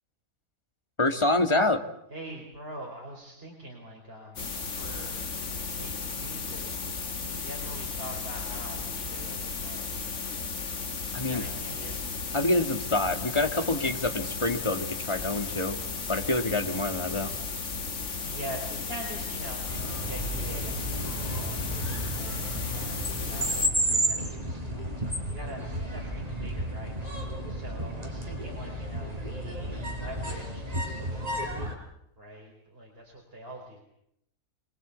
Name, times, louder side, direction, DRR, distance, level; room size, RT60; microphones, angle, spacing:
voice 1, 1.0-1.8 11.1-11.4 12.3-15.8 16.1-17.3, left 2 dB, 20° left, 6 dB, 1.9 m, -26 dB
voice 2, 2.1-5.2 5.7-6.9 7.4-10.3 11.3-12.1 18.0-33.8, right 1 dB, 40° right, 0 dB, 4.7 m, -44 dB
sound 1, 4.4-23.7, left 4 dB, 55° left, 1.9 m, -35 dB
sound 2, 19.7-31.7, right 1 dB, 25° right, 5.1 m, -32 dB
26.0 x 21.5 x 8.3 m, 0.77 s
omnidirectional pair, 1.5 m